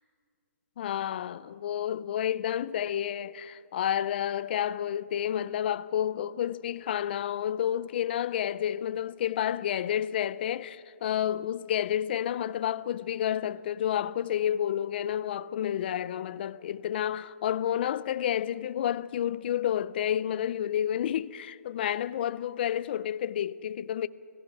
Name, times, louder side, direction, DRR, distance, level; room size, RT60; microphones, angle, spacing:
voice 1, 0.8-24.1, left 10 dB, 40° left, 0.4 m, -30 dB
29.0 x 16.0 x 6.0 m
hypercardioid pair, 165°, 8 cm